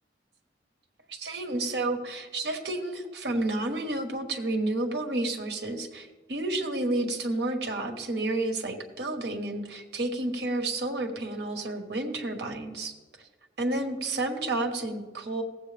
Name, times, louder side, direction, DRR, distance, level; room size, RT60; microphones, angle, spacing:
voice 1, 1.1-12.9 13.6-15.4, right 2 dB, 70° right, 4 dB, 1.3 m, -30 dB
16.5 x 8.0 x 3.4 m, 1.2 s
head